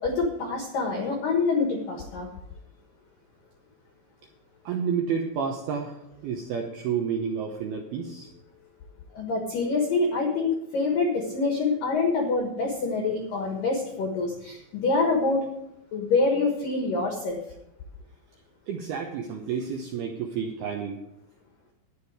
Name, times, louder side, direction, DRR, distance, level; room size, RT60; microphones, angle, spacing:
voice 1, 0.0-2.3 9.1-15.4 15.9-17.4, left 3 dB, 65° left, 2 dB, 2.3 m, -26 dB
voice 2, 4.7-8.3 18.7-21.0, right 6 dB, 85° right, 2 dB, 2.2 m, -30 dB
11.5 x 10.0 x 4.7 m, 0.81 s
omnidirectional pair, 5.9 m